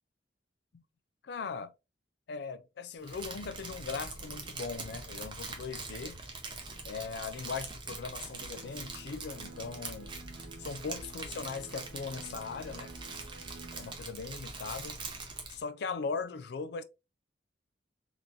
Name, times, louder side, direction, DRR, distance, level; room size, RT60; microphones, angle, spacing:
voice 1, 1.2-1.7 2.3-6.2 6.8-10.1 10.6-12.9 13.7-15.0 15.5-16.8, left 5 dB, 60° left, 0.4 m, -39 dB
Crumpling crinkling, 3.0-15.6, right 3 dB, 25° right, 0.7 m, -43 dB
sound 1, 8.5-14.0, right 3 dB, 80° right, 0.7 m, -52 dB
3.7 x 2.9 x 2.5 m
head